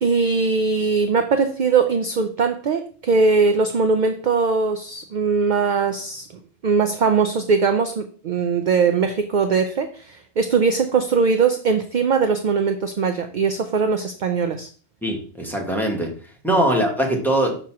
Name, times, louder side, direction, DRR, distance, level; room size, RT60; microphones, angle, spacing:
voice 1, 0.0-6.3 6.6-14.7 16.5-16.6, right 5 dB, 55° right, 7 dB, 0.6 m, -20 dB
voice 2, 15.0-16.1 16.4-17.6, right 1 dB, ahead, 0 dB, 1.2 m, -21 dB
6.2 x 2.9 x 5.7 m, 0.42 s
omnidirectional pair, 1.1 m